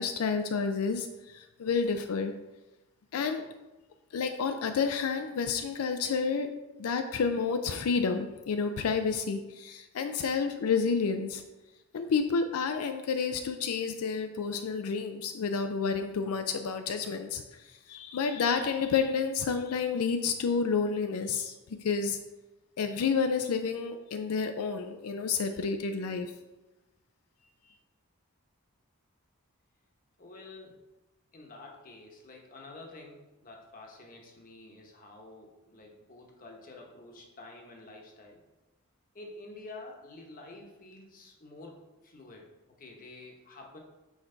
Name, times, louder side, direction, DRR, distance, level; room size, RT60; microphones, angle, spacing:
voice 1, 0.0-2.3 3.1-3.5 4.1-6.5 6.8-11.4 11.9-21.5 21.8-22.2 22.8-26.3, left 5 dB, 85° left, 7 dB, 0.4 m, -30 dB
voice 2, 30.2-30.8 31.3-38.4 39.1-42.5 42.8-43.8, left 2 dB, 40° left, 0 dB, 1.0 m, -49 dB
6.4 x 4.5 x 3.8 m, 1.1 s
head